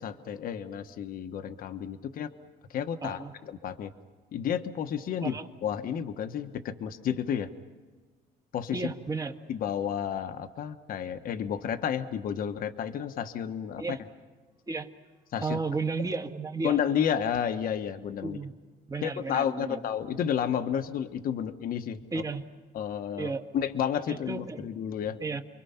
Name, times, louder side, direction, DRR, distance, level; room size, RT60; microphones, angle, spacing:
voice 1, 0.0-2.3 2.7-3.9 4.3-7.5 8.5-8.9 9.5-14.0 15.3-15.6 16.6-18.4 19.0-22.2 22.7-25.2, left 8 dB, 60° left, 8 dB, 1.3 m, -31 dB
voice 2, 3.0-3.3 5.2-5.5 8.7-9.3 13.8-14.0 14.7-14.9 15.4-16.8 18.2-18.5 18.9-19.8 22.1-22.5 23.2-23.5 24.3-24.7 25.2-25.4, right 4 dB, 20° right, 6 dB, 1.6 m, -33 dB
29.0 x 23.0 x 5.8 m, 1.4 s
cardioid pair, 110°, 17 cm